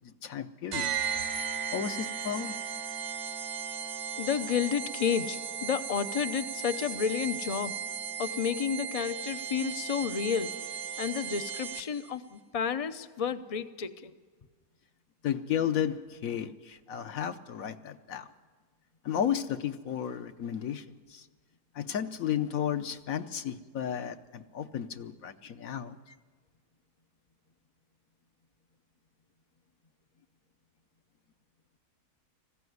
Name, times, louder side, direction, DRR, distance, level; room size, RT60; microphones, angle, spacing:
voice 1, 0.2-0.9 1.7-2.6 15.2-18.3 19.0-20.8 21.1-21.2 21.7-26.0, left 9 dB, 65° left, 9 dB, 1.2 m, -33 dB
sound 1, 0.7-12.1, right 7 dB, 55° right, 1.0 m, -36 dB
voice 2, 4.2-7.7 8.2-10.5 11.0-14.1, left 7 dB, 45° left, 12 dB, 0.4 m, -31 dB
20.5 x 15.5 x 9.4 m, 1.5 s
omnidirectional pair, 1.7 m